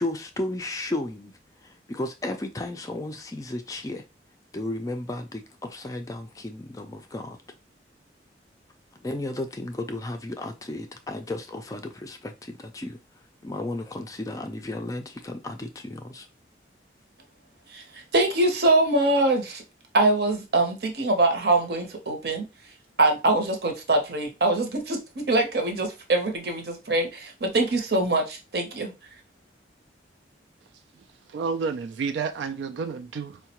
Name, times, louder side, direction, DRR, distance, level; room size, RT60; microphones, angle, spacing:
voice 1, 0.0-1.3 1.6-4.0 4.5-7.4 9.0-13.0 13.4-16.3, left 2 dB, 20° left, 0.3 m, -33 dB
voice 2, 18.1-19.6 19.9-22.4 23.0-28.9, right 2 dB, 60° right, 0.8 m, -23 dB
voice 3, 31.3-33.4, right 5 dB, 80° right, 0.3 m, -30 dB
4.6 x 2.1 x 2.9 m
head